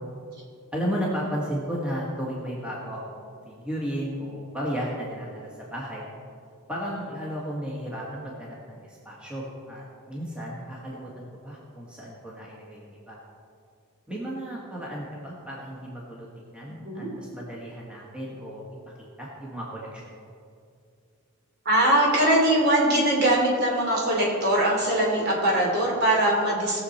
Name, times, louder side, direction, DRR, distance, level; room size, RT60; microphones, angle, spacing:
voice 1, 0.7-6.1 6.7-13.2 14.1-18.6 19.0-20.3, equal, 5° right, -5 dB, 1.5 m, -34 dB
voice 2, 21.6-26.8, right 1 dB, 50° right, -2 dB, 2.9 m, -22 dB
19.0 x 7.0 x 4.2 m, 2.3 s
head